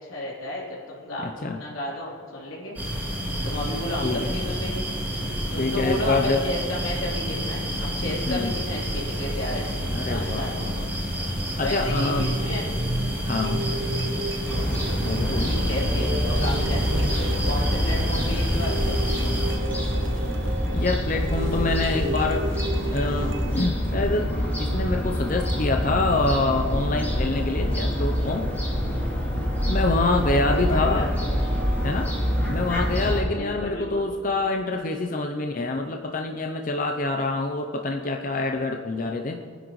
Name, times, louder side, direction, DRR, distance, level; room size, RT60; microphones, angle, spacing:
voice 1, 0.1-1.3 1.5-2.8 3.4-4.9 5.5-9.8 10.0-10.5 11.6-12.6 15.3-19.0 30.3-31.1 33.3-34.1, left 1 dB, 85° left, -5 dB, 3.6 m, -32 dB
voice 2, 1.2-1.6 4.0-4.3 5.6-6.4 8.3-8.5 9.9-10.9 11.6-12.3 13.2-13.6 15.0-15.5 20.7-22.5 22.9-28.5 29.7-31.1 31.8-32.1 32.5-39.4, left 3 dB, 40° left, 3 dB, 0.6 m, -26 dB
sound 1, 2.7-19.5, equal, 10° right, 3.0 m, -29 dB
sound 2, 11.7-23.7, right 2 dB, 65° right, 0.8 m, -33 dB
Fowl / Gull seagull, 14.5-33.2, equal, 10° left, 2.8 m, -26 dB
23.0 x 10.0 x 3.1 m, 2.3 s
head